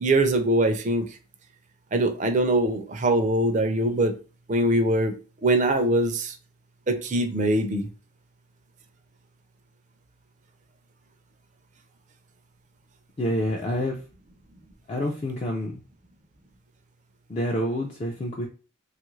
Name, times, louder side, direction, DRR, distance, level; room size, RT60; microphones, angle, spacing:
voice 1, 0.0-1.1 1.9-4.1 4.5-5.1 5.4-6.4 6.9-7.9, right 1 dB, 35° right, 0.4 m, -22 dB
voice 2, 13.2-14.0 14.9-15.8 17.3-18.5, equal, 30° left, 0.4 m, -27 dB
3.0 x 2.4 x 3.0 m
head